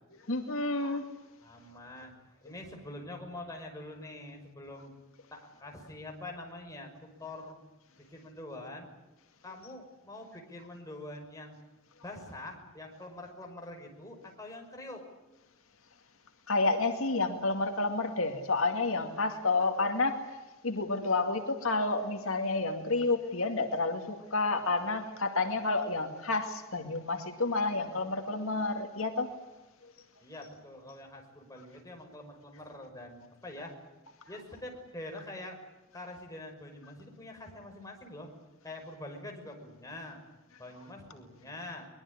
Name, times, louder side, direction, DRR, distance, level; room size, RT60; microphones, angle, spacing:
voice 1, 0.3-1.1 16.5-20.2 20.6-29.3, left 3 dB, 70° left, 5 dB, 2.2 m, -30 dB
voice 2, 1.4-4.9 5.3-7.6 8.0-8.9 9.4-11.6 12.0-15.0 30.2-33.7 34.3-35.6 35.9-38.3 38.6-40.2 40.6-41.9, left 1 dB, 15° left, 2 dB, 5.8 m, -45 dB
23.5 x 21.5 x 9.8 m, 1.1 s
head